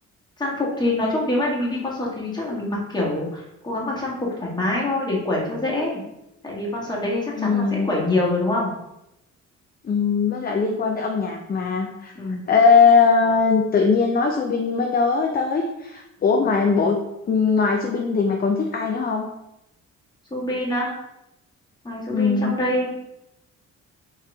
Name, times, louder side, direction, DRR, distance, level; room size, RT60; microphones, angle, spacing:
voice 1, 0.4-6.0 6.4-8.7 12.1-12.5 20.3-20.9 21.8-22.9, left 1 dB, 15° left, -4 dB, 1.7 m, -25 dB
voice 2, 7.4-7.9 9.8-12.1 12.5-17.0 17.3-19.3 22.1-22.6, left 5 dB, 30° left, 2 dB, 0.5 m, -20 dB
4.7 x 3.2 x 3.5 m, 0.87 s
cardioid pair, 90°, 30 cm